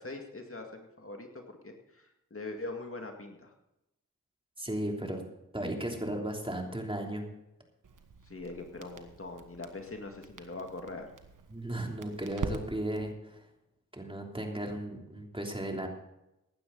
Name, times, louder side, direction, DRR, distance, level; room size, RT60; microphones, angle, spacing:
voice 1, 0.0-3.5 8.2-11.1, left 2 dB, 40° left, 3 dB, 2.1 m, -42 dB
voice 2, 4.6-5.2 5.5-7.2 11.5-13.4 13.9-15.9, right 1 dB, 15° right, 1 dB, 3.2 m, -35 dB
Crackle, 7.8-13.1, right 4 dB, 70° right, 1.4 m, -44 dB
16.5 x 11.5 x 4.0 m, 0.90 s
cardioid pair, 45°, 33 cm